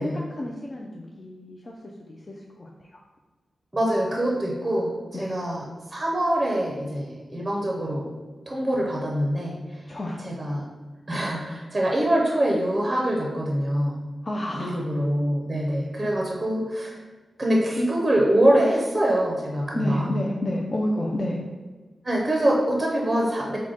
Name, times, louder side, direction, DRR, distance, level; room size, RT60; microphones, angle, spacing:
voice 1, 0.0-1.7 2.1-2.7 5.1-5.3 9.9-10.3 14.2-14.8 19.7-21.4, left 1 dB, 30° left, -2 dB, 0.3 m, -30 dB
voice 2, 3.7-5.6 5.9-8.1 8.5-9.8 10.2-10.7 11.1-14.0 14.6-17.0 17.4-20.2 22.0-23.6, right 1 dB, 25° right, -2 dB, 0.5 m, -24 dB
4.7 x 2.1 x 3.8 m, 1.3 s
wide cardioid pair, 145°, 0 cm